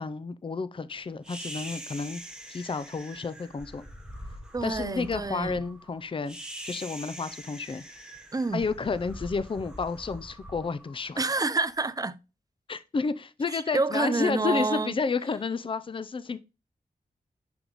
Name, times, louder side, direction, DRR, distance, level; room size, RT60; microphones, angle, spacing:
voice 1, 0.0-2.2 2.5-3.9 4.6-6.4 6.6-7.8 8.5-11.2 12.7-16.4, left 4 dB, 35° left, 0.5 m, -31 dB
sound 1, 1.2-11.6, equal, 5° right, 1.1 m, -43 dB
voice 2, 4.5-5.6 8.3-8.6 11.2-12.2 13.5-15.0, right 3 dB, 25° right, 0.4 m, -28 dB
5.9 x 5.2 x 3.0 m
cardioid pair, 55°, 16 cm